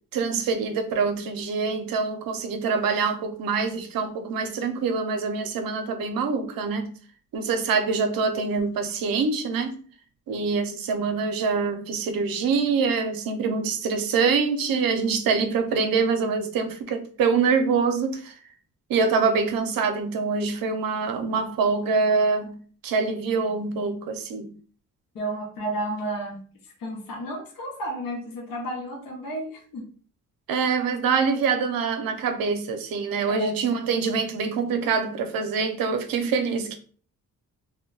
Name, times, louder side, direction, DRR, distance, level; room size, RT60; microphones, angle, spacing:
voice 1, 0.1-6.9 7.3-9.8 10.3-18.4 18.9-22.6 22.8-24.5 30.5-36.8, right 5 dB, 90° right, 0.6 m, -25 dB
voice 2, 25.1-26.4 26.8-29.8 33.3-33.5, right 1 dB, 80° left, 0.9 m, -32 dB
2.2 x 2.1 x 3.7 m
cardioid pair, 90°, 33 cm